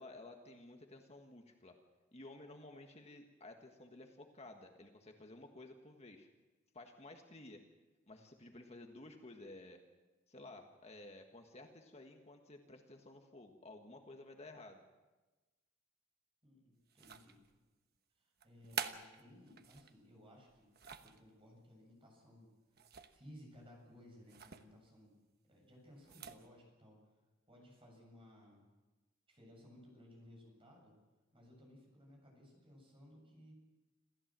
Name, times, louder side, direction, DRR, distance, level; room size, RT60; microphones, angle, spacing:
voice 1, 0.0-1.8 2.1-6.3 6.7-7.6 8.1-9.8 10.3-14.9, left 2 dB, 35° left, 4 dB, 1.5 m, -54 dB
voice 2, 16.4-17.4 18.2-20.7 21.0-22.8 23.1-25.2 25.5-27.0 27.5-28.6 29.3-31.0 31.3-33.5, left 1 dB, 30° right, 0 dB, 7.7 m, -59 dB
sound 1, 16.9-17.6 18.4-19.9 20.5-21.2 22.7-23.3 23.5-23.7 24.3-24.6 26.0-26.5, right 7 dB, 50° right, 1.1 m, -46 dB
27.0 x 14.5 x 7.6 m, 1.2 s
head